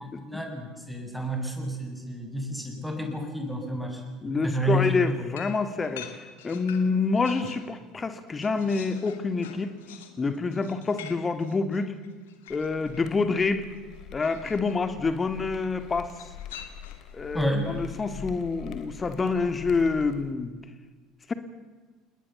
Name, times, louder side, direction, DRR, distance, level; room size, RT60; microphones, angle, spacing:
voice 1, 0.2-4.9 17.3-17.7, equal, ahead, 3 dB, 7.4 m, -30 dB
voice 2, 4.2-9.7 10.2-11.9 12.5-13.7 14.1-16.1 17.1-20.5 21.3-21.4, left 4 dB, 25° left, 10 dB, 2.4 m, -27 dB
sound 1, 4.8-7.7 8.1-13.1 14.2-14.8 16.1-17.2, left 9 dB, 70° left, 2.4 m, -46 dB
sound 2, 12.5-20.3, left 10 dB, 50° left, 3.4 m, -45 dB
29.5 x 20.5 x 7.2 m, 1.4 s
figure-of-eight pair, 65°, 0 cm